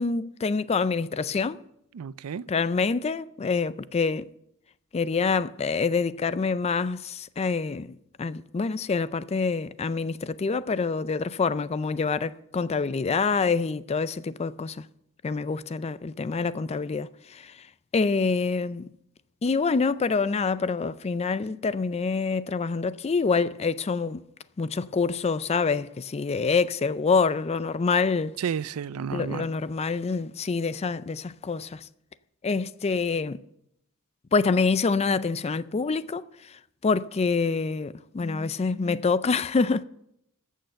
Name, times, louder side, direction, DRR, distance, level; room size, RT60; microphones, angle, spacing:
voice 1, 0.0-1.6 2.5-4.3 4.9-14.8 15.2-17.6 17.9-18.9 19.4-24.2 24.6-28.4 29.1-31.9 32.4-33.4 34.3-39.8, left 4 dB, 30° left, 0.4 m, -26 dB
voice 2, 1.9-2.4 28.4-29.5, right 7 dB, 80° right, 0.4 m, -31 dB
14.0 x 6.5 x 6.8 m
head